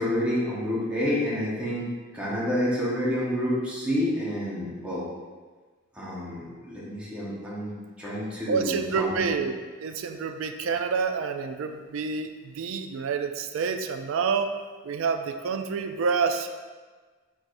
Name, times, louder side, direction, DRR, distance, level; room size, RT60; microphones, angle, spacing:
voice 1, 0.0-1.9 2.1-5.0 6.0-9.3, equal, 5° right, -8 dB, 1.0 m, -29 dB
voice 2, 8.5-14.6 14.8-16.5, right 5 dB, 70° right, 7 dB, 0.3 m, -28 dB
4.6 x 4.1 x 2.6 m, 1.4 s
head